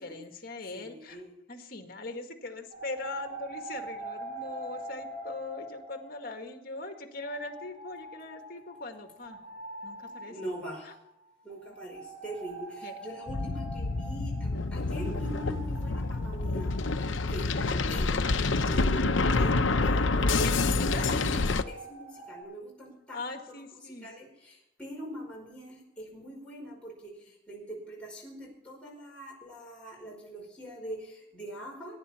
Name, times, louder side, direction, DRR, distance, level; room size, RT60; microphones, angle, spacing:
voice 1, 0.0-1.2 1.5-9.4 9.8-10.5 10.9-11.0 12.8-13.0 20.4-21.1 23.1-24.1, left 2 dB, 50° left, 5 dB, 1.9 m, -40 dB
voice 2, 0.7-1.3 10.2-10.9 11.4-16.7 17.3-32.0, right 1 dB, 5° left, -4 dB, 5.1 m, -43 dB
sound 1, 2.7-6.8 7.2-17.8 18.5-22.4, right 2 dB, 35° right, 6.4 m, -45 dB
sound 2, 13.3-21.6, left 3 dB, 75° left, 0.8 m, -27 dB
22.5 x 11.0 x 4.4 m, 0.82 s
head